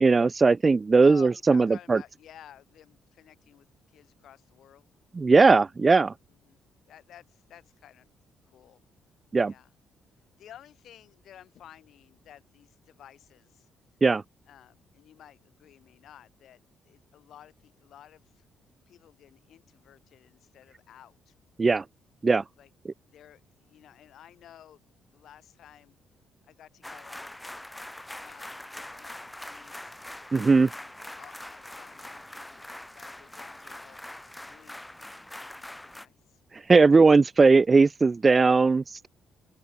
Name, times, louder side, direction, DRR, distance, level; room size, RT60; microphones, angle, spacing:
voice 1, 0.0-2.0 5.1-6.1 9.3-9.5 14.0-14.2 21.6-21.8 22.2-22.4 30.3-30.7 36.7-39.1, right 4 dB, 30° right, 0.4 m, -19 dB
voice 2, 1.0-4.9 6.3-6.6 6.9-8.1 8.5-8.8 9.4-9.7 10.4-13.7 14.5-18.5 18.9-21.3 22.6-22.7 23.1-26.0 26.4-27.4 28.2-30.3 30.6-34.0 34.4-34.8 35.4-36.4, left 11 dB, 70° left, 5.8 m, -54 dB
sound 1, 26.8-36.1, left 1 dB, 10° left, 0.7 m, -43 dB
open air
cardioid pair, 90°, 0 cm